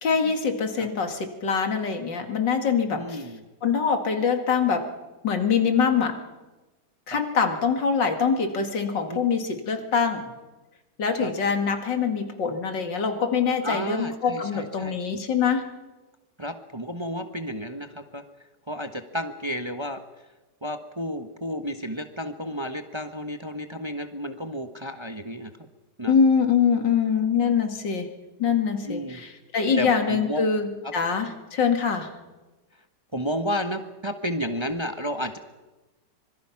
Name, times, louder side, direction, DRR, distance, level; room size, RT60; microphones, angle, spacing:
voice 1, 0.0-3.2 3.6-4.8 5.2-6.2 7.1-10.2 11.0-15.6 26.1-28.1 28.4-32.1, left 6 dB, 85° left, 5 dB, 2.8 m, -24 dB
voice 2, 2.9-3.5 7.1-7.2 9.1-9.2 11.2-11.3 13.6-15.2 16.4-18.2 18.7-20.0 20.6-25.5 26.0-26.1 28.8-29.2 29.8-30.5 30.8-30.9 33.1-35.4, equal, 20° right, 7 dB, 1.0 m, -32 dB
25.0 x 23.0 x 5.9 m, 1.1 s
omnidirectional pair, 1.9 m